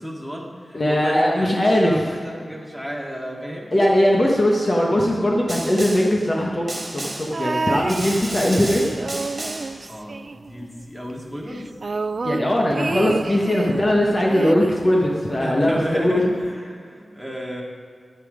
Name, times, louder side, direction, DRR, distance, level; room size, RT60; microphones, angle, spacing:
voice 1, 0.0-1.5 1.8-3.7 9.9-11.7 14.3-14.4 15.4-17.6, equal, 5° left, -2 dB, 2.1 m, -32 dB
voice 2, 0.7-1.9 3.7-6.7 6.9-8.9 12.2-16.2, left 1 dB, 35° left, -2 dB, 1.3 m, -20 dB
Snare drum, 5.5-6.2 6.7-7.4 7.9-9.8, right 1 dB, 25° right, 2.3 m, -32 dB
sound 1, 7.3-8.6 8.9-10.8 11.1-11.2 11.5-13.9 14.3-15.6 16.4-16.5, right 3 dB, 50° right, 0.3 m, -30 dB
11.0 x 10.5 x 5.1 m, 2.1 s
wide cardioid pair, 115°, 0 cm